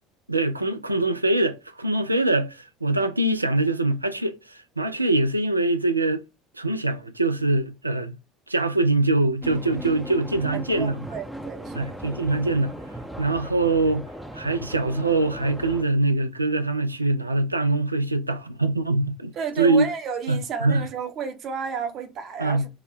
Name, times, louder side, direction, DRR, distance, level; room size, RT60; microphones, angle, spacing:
voice 1, 0.3-6.2 6.6-8.1 8.5-11.1 11.7-12.7 13.2-14.1 14.3-19.9 20.3-20.9 22.4-22.6, right 2 dB, 90° right, 0.3 m, -23 dB
sound 1, 9.4-15.8, right 1 dB, ahead, 0.6 m, -37 dB
voice 2, 10.5-11.9 19.3-22.7, right 6 dB, 45° right, 0.7 m, -32 dB
3.4 x 2.1 x 3.4 m
figure-of-eight pair, 65°, 0 cm